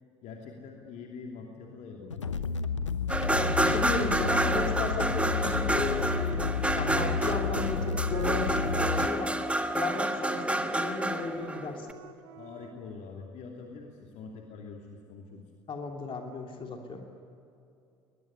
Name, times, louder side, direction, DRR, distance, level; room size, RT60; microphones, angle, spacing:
voice 1, 0.2-2.3 12.4-15.4, left 4 dB, 50° left, 1 dB, 2.8 m, -44 dB
sound 1, 2.0-9.1, left 5 dB, 80° left, 0.8 m, -31 dB
sound 2, 3.1-11.9, right 1 dB, 10° right, 1.5 m, -29 dB
voice 2, 3.3-9.3 9.7-11.9 15.7-17.0, left 3 dB, 35° left, 2 dB, 3.0 m, -35 dB
Wind instrument woodwind instrument, 6.2-12.7, right 8 dB, 65° right, 1.7 m, -47 dB
21.5 x 21.5 x 9.9 m, 2.6 s
figure-of-eight pair, 60°, 15 cm